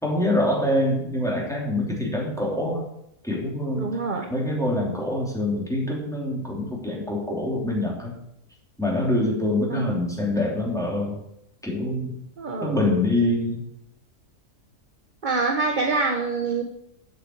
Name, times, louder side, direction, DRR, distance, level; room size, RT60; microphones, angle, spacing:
voice 1, 0.0-2.9 3.2-3.9 4.3-8.1 8.8-11.1 11.6-12.1 12.6-13.6, left 1 dB, ahead, -3 dB, 3.0 m, -25 dB
voice 2, 3.8-4.3 9.7-10.0 12.4-12.8 15.2-16.6, right 4 dB, 35° right, 4 dB, 1.0 m, -25 dB
8.0 x 7.6 x 7.8 m, 0.78 s
omnidirectional pair, 1.6 m